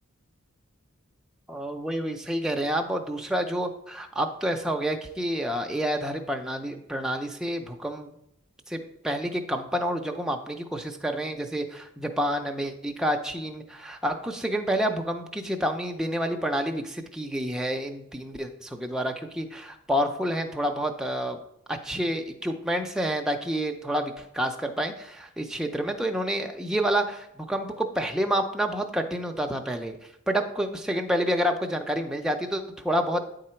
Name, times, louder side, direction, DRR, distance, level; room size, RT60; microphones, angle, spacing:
voice 1, 1.5-8.1 8.7-21.4 21.7-30.0 30.3-33.2, equal, 5° right, 3 dB, 0.5 m, -29 dB
9.2 x 3.8 x 4.4 m, 0.78 s
head